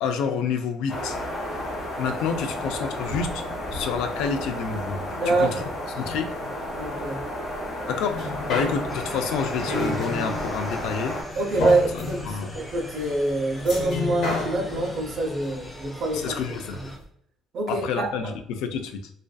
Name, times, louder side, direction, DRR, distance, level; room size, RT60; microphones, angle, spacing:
voice 1, 0.0-1.2 2.0-3.4 3.7-5.7 6.0-7.1 7.9-11.2 12.3-12.5 16.1-16.8 17.7-19.1, left 6 dB, 85° left, 7 dB, 0.3 m, -29 dB
sound 1, 0.9-11.2, left 1 dB, 45° left, 1.1 m, -32 dB
voice 2, 5.2-5.5 6.8-7.3 8.5-8.7 11.4-16.4 16.7-16.9 17.5-18.1, right 2 dB, 50° right, 1 dB, 0.6 m, -26 dB
sound 2, 8.1-16.6 17.0-17.1, left 2 dB, 60° left, 0.9 m, -31 dB
sound 3, 8.9-17.0, left 1 dB, 10° left, 0.4 m, -42 dB
2.5 x 2.3 x 2.2 m, 0.68 s
cardioid pair, 150°, 0 cm